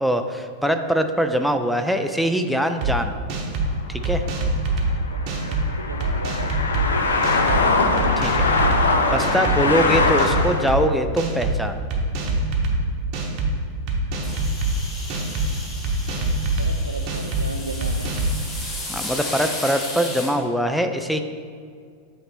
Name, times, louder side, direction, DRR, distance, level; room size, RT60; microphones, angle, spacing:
voice 1, 0.0-3.2 3.9-4.2 8.2-8.5 9.1-11.8 18.9-21.2, equal, ahead, 7 dB, 0.3 m, -22 dB
sound 1, 2.8-2.9 3.3-3.7 4.0-4.9 5.3-5.6 6.0-6.8 7.2-7.6 8.0-8.8 9.2-9.6 9.9-10.8 11.2-11.6 11.9-12.8 13.1-13.5 13.9-14.7 15.1-15.5 15.8-16.7 17.1-17.4 17.8-18.3, right 4 dB, 40° right, 0.8 m, -24 dB
sound 2, 3.6-10.8, left 3 dB, 70° left, 0.5 m, -22 dB
voice 2, 5.1-7.7 15.1-15.4 16.6-18.1, right 2 dB, 85° right, 7 dB, 0.3 m, -36 dB
sound 3, 14.2-20.3, left 2 dB, 20° left, 1.3 m, -34 dB
7.6 x 3.0 x 4.3 m, 2.1 s
figure-of-eight pair, 90°, 0 cm